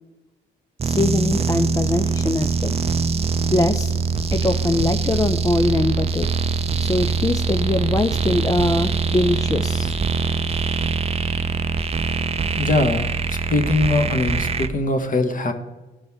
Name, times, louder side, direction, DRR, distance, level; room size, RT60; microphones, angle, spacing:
voice 1, 0.8-2.8 3.5-3.9 4.3-6.3 6.8-10.0, left 2 dB, 15° left, 7 dB, 0.4 m, -22 dB
sound 1, 0.8-14.7, right 5 dB, 30° right, 0.5 m, -23 dB
voice 2, 12.6-15.5, left 2 dB, 40° left, 5 dB, 1.3 m, -21 dB
14.0 x 5.3 x 3.6 m, 1.1 s
cardioid pair, 90°, 20 cm